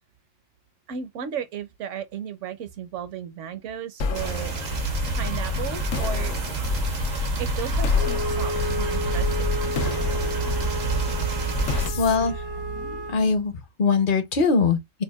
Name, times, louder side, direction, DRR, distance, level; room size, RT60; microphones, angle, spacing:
voice 1, 0.9-4.5 5.2-6.6 7.4-9.5, right 8 dB, 70° right, 1.0 m, -35 dB
sound 1, 4.0-13.4, left 4 dB, 85° left, 1.1 m, -29 dB
sound 2, 4.1-11.9, right 5 dB, 90° right, 1.5 m, -29 dB
Wind instrument woodwind instrument, 7.9-13.2, equal, 30° right, 0.5 m, -32 dB
voice 2, 11.7-12.3 13.1-15.0, left 4 dB, 50° left, 0.8 m, -22 dB
5.5 x 2.2 x 2.3 m
omnidirectional pair, 1.3 m